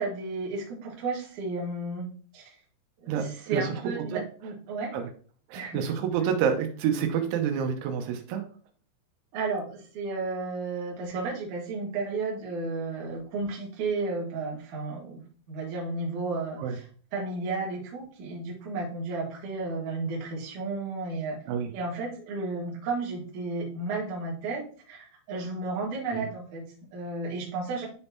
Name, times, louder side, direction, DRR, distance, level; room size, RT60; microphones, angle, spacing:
voice 1, 0.0-2.1 2.3-2.5 3.0-3.2 3.5-5.0 5.5-5.8 9.3-15.2 15.5-16.8 17.1-21.4 21.7-27.9, right 3 dB, 55° right, -3 dB, 2.3 m, -33 dB
voice 2, 3.1-4.2 4.9-5.1 5.5-8.5 16.6-16.8 21.5-21.7 26.1-26.3, right 7 dB, 90° right, 5 dB, 3.2 m, -28 dB
9.8 x 3.6 x 2.8 m, 0.42 s
omnidirectional pair, 5.5 m